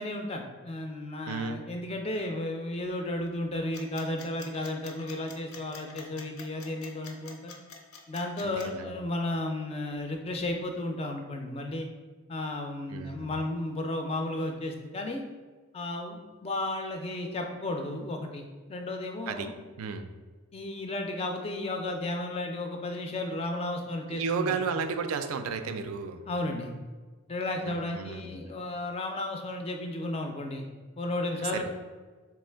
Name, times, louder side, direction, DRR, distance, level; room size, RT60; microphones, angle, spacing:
voice 1, 0.0-7.5 8.1-11.9 12.3-15.2 15.7-19.5 20.5-24.6 26.3-26.7 27.3-30.7 31.0-31.7, left 2 dB, 25° left, 3 dB, 0.3 m, -33 dB
voice 2, 1.2-1.6 8.4-8.8 12.9-13.3 19.3-19.5 19.8-20.1 24.1-26.2 27.6-28.3 31.4-31.6, right 5 dB, 75° right, 8 dB, 0.3 m, -33 dB
sound 1, 3.7-8.7, left 5 dB, 75° left, 0.5 m, -47 dB
3.5 x 3.1 x 3.3 m, 1.4 s
head